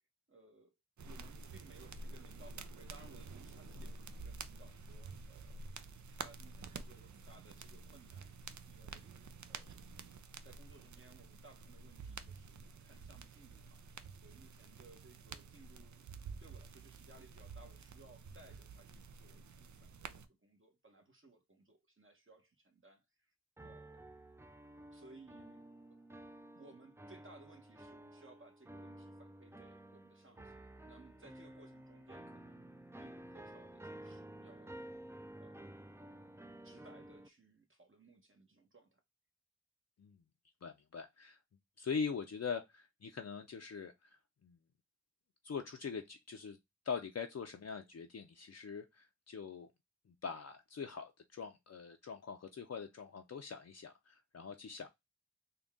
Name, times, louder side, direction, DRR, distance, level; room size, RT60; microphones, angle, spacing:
voice 1, 0.3-0.7 1.0-5.7 6.1-9.1 9.5-9.8 10.4-13.8 14.2-16.1 16.4-23.3 23.6-24.1 24.9-25.6 26.5-32.7 33.0-34.8 35.4-35.7 36.6-39.0, right 2 dB, 45° right, 1.0 m, -61 dB
sound 1, 1.0-20.3, right 4 dB, 80° right, 0.5 m, -50 dB
sound 2, 23.6-37.3, right 1 dB, 10° right, 0.4 m, -53 dB
voice 2, 40.6-41.4 41.8-44.2 44.4-44.6 45.4-46.6 46.8-49.7 50.1-54.9, left 6 dB, 60° left, 0.5 m, -43 dB
3.9 x 2.3 x 3.5 m
wide cardioid pair, 45°, 29 cm